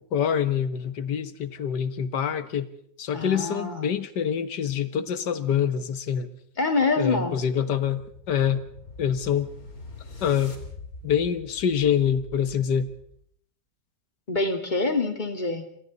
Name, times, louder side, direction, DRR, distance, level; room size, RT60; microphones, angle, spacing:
voice 1, 0.1-2.7 3.0-6.3 7.0-8.0 8.3-8.6 9.0-9.5 10.2-10.5 11.0-12.9, left 8 dB, 65° left, 12 dB, 1.9 m, -25 dB
voice 2, 3.1-3.9 6.6-7.4 14.3-15.7, left 3 dB, 25° left, 6 dB, 2.4 m, -26 dB
sound 1, 7.7-13.2, left 3 dB, 50° left, 3.6 m, -45 dB
28.0 x 25.0 x 4.1 m, 0.66 s
omnidirectional pair, 2.0 m